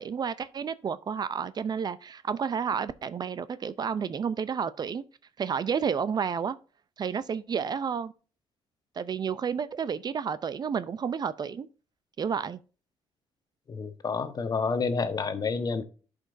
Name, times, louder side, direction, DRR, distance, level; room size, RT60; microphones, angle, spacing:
voice 1, 0.0-5.0 5.4-6.6 7.0-8.1 9.0-11.7 12.2-12.6, right 6 dB, 40° right, 0.5 m, -31 dB
voice 2, 13.7-15.8, left 4 dB, 40° left, 1.1 m, -29 dB
11.5 x 5.2 x 2.6 m
cardioid pair, 105°, 11 cm